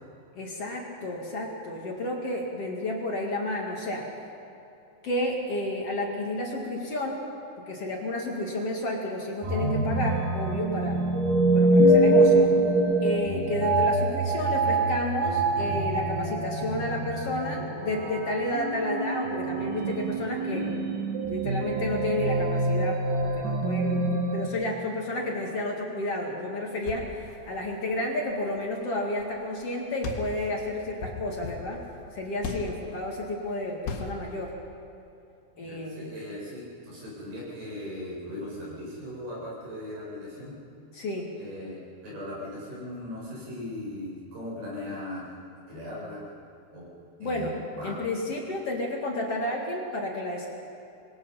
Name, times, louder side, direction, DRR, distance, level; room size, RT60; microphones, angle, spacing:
voice 1, 0.3-4.1 5.0-7.2 7.6-11.0 11.5-12.5 13.0-20.7 21.3-31.8 32.1-34.5 35.6-36.1 40.9-41.3 47.2-47.5 47.8-50.5, left 1 dB, 45° left, -1 dB, 2.7 m, -31 dB
sound 1, 9.4-24.5, right 2 dB, 60° right, 3.3 m, -25 dB
sound 2, 26.7-29.3 29.6-29.7 30.0-32.9 33.8-34.3, left 4 dB, 85° left, 3.8 m, -38 dB
voice 2, 35.5-40.6 41.4-45.3 45.7-46.2 46.7-46.9 47.2-48.0, left 1 dB, 90° right, -6 dB, 9.7 m, -38 dB
27.0 x 21.0 x 5.7 m, 2.7 s
omnidirectional pair, 4.4 m